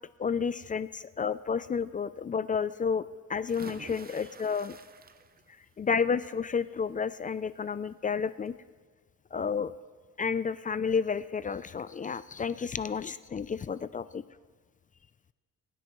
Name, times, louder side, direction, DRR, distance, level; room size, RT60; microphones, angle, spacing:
voice 1, 0.2-4.7 5.8-8.5 9.3-9.7 10.2-14.2, left 6 dB, 25° left, 15 dB, 0.4 m, -31 dB
sound 1, 3.5-5.6 6.0-6.4 7.8-7.9 8.3-8.4, right 6 dB, 30° right, 0.7 m, -50 dB
23.5 x 9.8 x 3.1 m, 1.5 s
cardioid pair, 90°, 30 cm